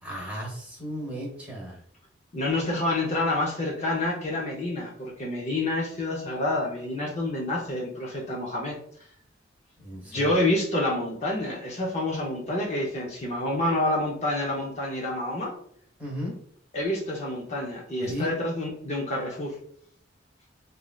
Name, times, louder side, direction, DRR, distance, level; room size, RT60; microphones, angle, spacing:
voice 1, 0.0-1.8 9.8-10.4 16.0-16.4 18.1-18.3, equal, 10° right, -3 dB, 1.0 m, -35 dB
voice 2, 2.3-8.8 10.1-15.5 16.7-19.5, left 1 dB, 35° left, -2 dB, 0.6 m, -28 dB
3.1 x 2.6 x 2.3 m, 0.64 s
head